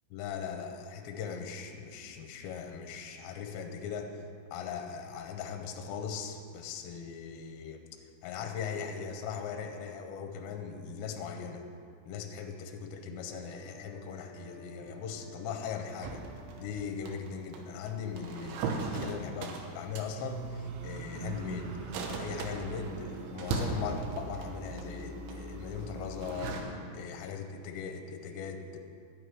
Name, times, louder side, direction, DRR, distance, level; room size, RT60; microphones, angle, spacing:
voice 1, 0.1-4.1 4.5-7.8 8.2-11.6 12.1-16.2 16.6-21.7 21.9-28.8, left 6 dB, 80° left, 5 dB, 2.9 m, -39 dB
sound 1, 13.1-17.1, right 6 dB, 35° right, 3.2 m, -56 dB
sound 2, 16.0-26.6, right 4 dB, 85° right, 3.3 m, -38 dB
11.0 x 8.8 x 4.7 m, 2.3 s
omnidirectional pair, 5.3 m